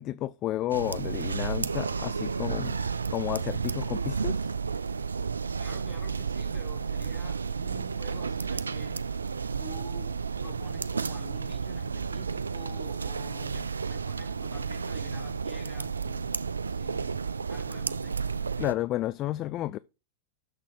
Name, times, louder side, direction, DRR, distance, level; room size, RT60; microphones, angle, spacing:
voice 1, 0.0-2.8 3.1-4.4 18.6-19.8, left 14 dB, 35° left, 0.3 m, -31 dB
sound 1, 0.7-18.7, right 5 dB, 75° right, 0.3 m, -32 dB
voice 2, 5.6-9.1 9.6-18.4, left 2 dB, 15° left, 3.1 m, -48 dB
6.7 x 6.1 x 4.9 m
figure-of-eight pair, 90°, 0 cm